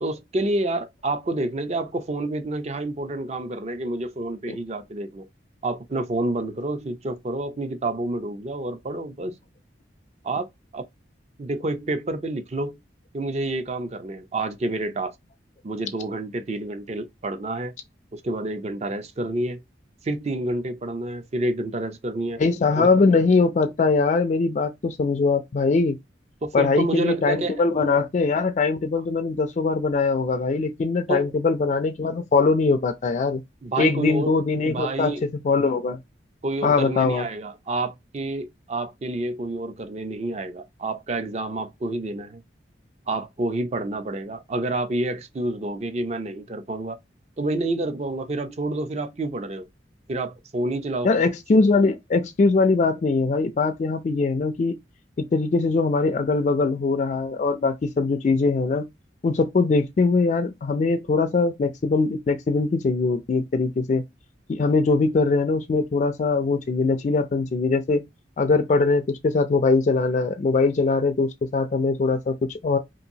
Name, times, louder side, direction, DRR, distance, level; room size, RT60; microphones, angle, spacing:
voice 1, 0.0-5.3 5.6-9.3 10.2-10.8 11.4-12.8 13.1-15.1 15.6-17.7 18.1-19.6 20.0-22.4 22.7-22.9 26.4-27.6 31.1-31.3 33.6-34.3 34.6-35.3 36.4-42.4 43.1-47.0 47.4-49.7 50.1-51.1, right 2 dB, 35° right, 0.5 m, -28 dB
voice 2, 22.4-26.0 26.5-33.4 33.8-36.0 36.6-37.3 51.0-54.8 55.2-58.9 59.2-64.0 64.5-68.0 68.4-72.8, left 4 dB, 40° left, 0.3 m, -22 dB
2.8 x 2.6 x 2.6 m
head